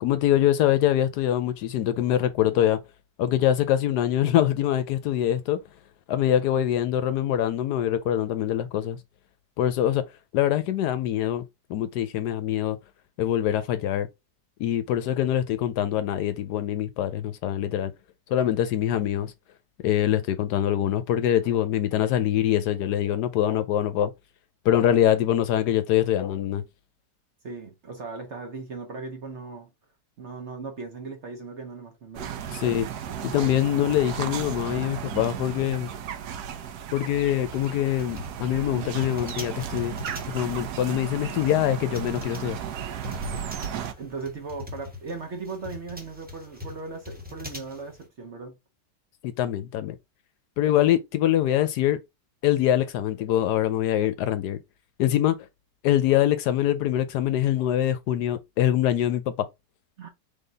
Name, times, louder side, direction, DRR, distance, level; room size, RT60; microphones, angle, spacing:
voice 1, 0.0-2.8 3.2-5.6 6.1-9.0 9.6-10.0 10.3-11.4 11.7-12.8 13.2-14.1 14.6-17.9 18.3-19.3 19.8-24.1 24.6-26.6 32.5-32.9 33.2-35.9 36.9-40.0 40.3-42.6 49.2-50.0 50.6-52.0 52.4-54.6 55.0-55.4 55.8-59.5, left 11 dB, 75° left, 1.1 m, -24 dB
voice 2, 27.4-29.7 30.2-32.3 38.7-38.9 43.3-48.5 60.0-60.1, right 4 dB, 50° right, 1.0 m, -38 dB
sound 1, 32.1-43.9, right 8 dB, 70° right, 1.1 m, -35 dB
sound 2, 37.5-48.1, left 3 dB, 10° right, 0.7 m, -42 dB
3.8 x 3.4 x 3.9 m
omnidirectional pair, 1.9 m